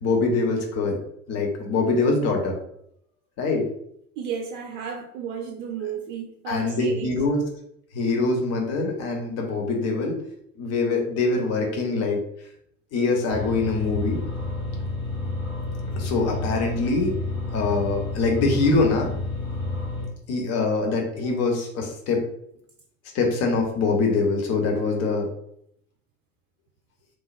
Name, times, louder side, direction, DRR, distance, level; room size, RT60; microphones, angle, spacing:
voice 1, 0.0-1.0 1.3-2.6 3.4-3.6 6.5-7.4 7.9-10.2 10.6-12.2 12.9-14.2 16.0-17.1 17.5-19.1 20.3-22.2 23.1-25.3, left 3 dB, 40° left, 1 dB, 0.8 m, -23 dB
voice 2, 4.2-7.1, right 7 dB, 55° right, 2 dB, 0.5 m, -33 dB
sound 1, 13.3-20.1, left 2 dB, 70° left, 1.3 m, -30 dB
3.1 x 2.1 x 2.5 m, 0.71 s
figure-of-eight pair, 65°, 38 cm